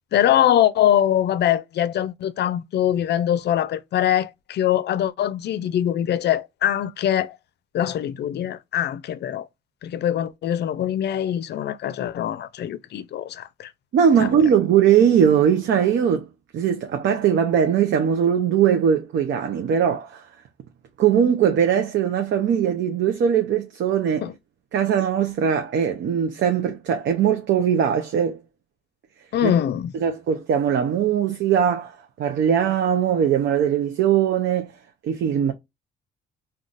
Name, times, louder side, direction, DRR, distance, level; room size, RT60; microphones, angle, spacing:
voice 1, 0.1-7.4 7.7-9.5 9.8-13.7 14.2-14.3 24.2-24.3 29.3-29.9, left 11 dB, 60° left, 0.4 m, -23 dB
voice 2, 13.9-16.3 16.5-20.2 21.0-24.3 24.7-28.4 29.4-29.5 30.0-34.7 35.0-35.5, right 8 dB, 65° right, 0.6 m, -20 dB
3.8 x 2.3 x 2.4 m
cardioid pair, 90°, 20 cm